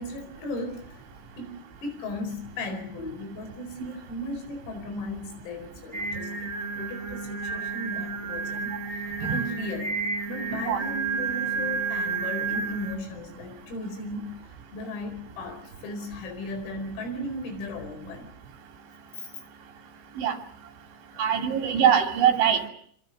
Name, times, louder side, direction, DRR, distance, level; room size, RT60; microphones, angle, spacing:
voice 1, 0.0-8.8 9.2-10.0 10.3-14.4 14.7-18.3 19.2-19.3 21.1-21.2, left 1 dB, 90° left, 8 dB, 7.3 m, -36 dB
Singing, 5.9-12.9, right 4 dB, 15° right, 2.9 m, -31 dB
voice 2, 10.5-10.8 20.2-20.4 21.2-22.7, right 8 dB, 65° right, 4 dB, 4.9 m, -23 dB
26.0 x 25.5 x 6.6 m, 0.62 s
omnidirectional pair, 5.9 m